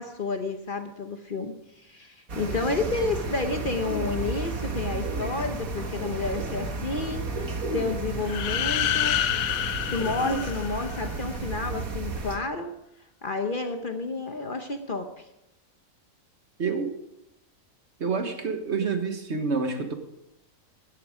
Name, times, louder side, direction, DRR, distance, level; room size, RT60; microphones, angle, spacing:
voice 1, 0.0-9.3 9.9-12.7 13.2-15.2, left 3 dB, 45° left, 7 dB, 0.9 m, -30 dB
sound 1, 2.3-12.4, right 3 dB, 85° right, 2.1 m, -32 dB
sound 2, 8.2-11.2, left 11 dB, 85° left, 1.1 m, -28 dB
voice 2, 16.6-17.0 18.0-19.9, right 4 dB, 55° right, 7 dB, 1.5 m, -28 dB
13.5 x 10.5 x 4.9 m, 0.85 s
omnidirectional pair, 1.4 m